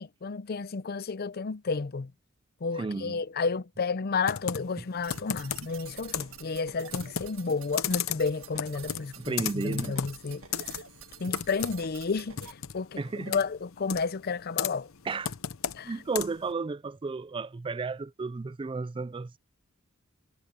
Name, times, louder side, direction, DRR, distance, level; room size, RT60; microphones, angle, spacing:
voice 1, 0.0-2.1 2.6-10.8 11.2-14.9 15.7-15.9, left 4 dB, 50° left, 0.5 m, -32 dB
voice 2, 2.8-3.2 9.2-10.1 13.0-13.4 15.1-15.3 15.8-19.4, right 4 dB, 25° right, 0.4 m, -33 dB
Computer keyboard, 4.2-16.5, left 8 dB, 90° left, 0.8 m, -36 dB
sound 1, 5.0-12.5, right 7 dB, 80° right, 1.8 m, -48 dB
head